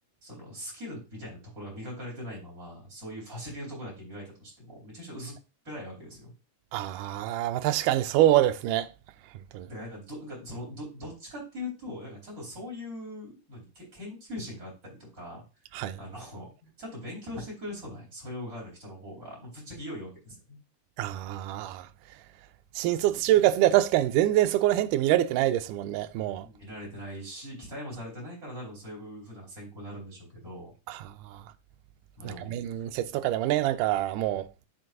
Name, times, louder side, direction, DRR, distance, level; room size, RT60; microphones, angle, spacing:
voice 1, 0.2-5.4 5.6-6.3 9.7-15.4 16.0-20.6 23.0-23.3 26.4-30.7 32.2-32.5, left 1 dB, 25° right, 4.2 m, -41 dB
voice 2, 6.7-8.9 9.5-9.7 15.7-16.0 21.0-21.9 22.8-26.5 30.9-31.4 32.2-34.5, right 13 dB, 85° right, 2.1 m, -25 dB
12.5 x 4.6 x 2.5 m
omnidirectional pair, 3.8 m